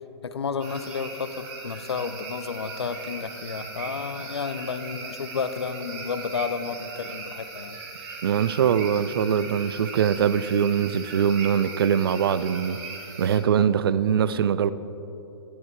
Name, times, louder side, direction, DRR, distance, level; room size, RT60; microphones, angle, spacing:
voice 1, 0.2-7.8, left 5 dB, 70° left, 11 dB, 0.8 m, -31 dB
sound 1, 0.6-13.4, right 4 dB, 35° right, 2.1 m, -39 dB
voice 2, 8.2-12.8 13.2-14.7, right 8 dB, 60° right, 15 dB, 0.5 m, -22 dB
13.5 x 11.5 x 4.6 m, 3.0 s
figure-of-eight pair, 115°, 14 cm